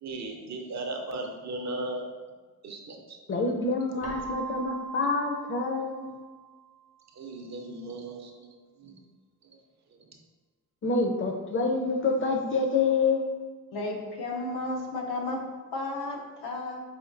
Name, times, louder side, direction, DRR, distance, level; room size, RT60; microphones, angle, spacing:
voice 1, 0.0-2.0 2.6-3.2 7.2-8.5 8.8-9.0 9.9-10.0, right 2 dB, 50° right, 2 dB, 0.5 m, -37 dB
voice 2, 3.3-6.1 10.8-13.3, left 3 dB, 35° left, 3 dB, 0.4 m, -27 dB
Keyboard (musical), 4.0-6.7, right 5 dB, 85° right, 0.8 m, -40 dB
voice 3, 13.7-16.8, left 2 dB, 85° left, 1 dB, 0.7 m, -33 dB
5.0 x 2.6 x 2.5 m, 1.4 s
wide cardioid pair, 140°, 37 cm